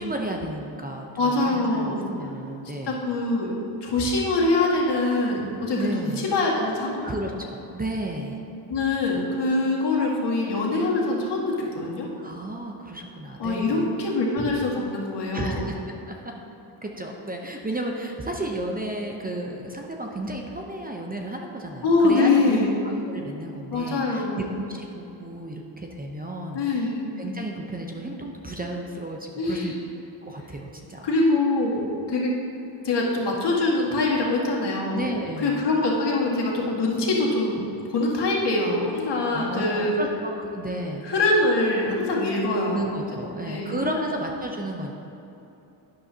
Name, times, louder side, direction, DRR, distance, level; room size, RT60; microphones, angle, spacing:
voice 1, 0.0-3.0 5.7-6.2 7.0-8.4 12.2-13.9 15.3-15.8 16.1-16.3 16.8-22.8 23.1-26.9 27.2-29.7 30.2-31.1 34.9-35.6 39.3-41.0 42.7-44.9, right 1 dB, 20° right, 1 dB, 0.8 m, -33 dB
voice 2, 1.2-2.0 2.9-3.5 3.8-7.0 8.7-12.1 13.4-15.6 21.8-22.9 23.7-24.4 26.5-27.1 29.4-29.7 31.0-32.3 32.8-35.0 35.4-37.6 37.9-40.0 41.0-42.8 43.1-44.0, left 2 dB, 60° left, -3 dB, 2.1 m, -24 dB
11.5 x 9.7 x 2.9 m, 2.9 s
cardioid pair, 105°, 47 cm